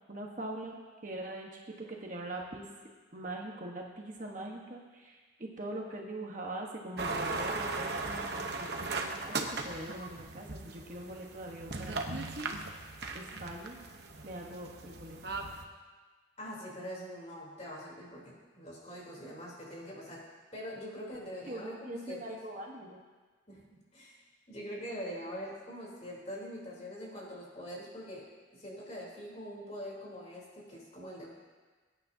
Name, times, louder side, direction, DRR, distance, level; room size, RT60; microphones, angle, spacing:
voice 1, 0.1-2.6 3.1-12.1 13.1-13.8 14.2-15.2 21.5-23.0, right 1 dB, 40° right, 0 dB, 1.3 m, -42 dB
sound 1, 7.0-15.6, right 3 dB, 55° right, 1.0 m, -38 dB
voice 2, 16.4-20.2 20.5-22.4 23.5-23.6 23.9-31.3, equal, 35° left, -4 dB, 3.5 m, -43 dB
23.0 x 9.7 x 2.8 m, 1.4 s
head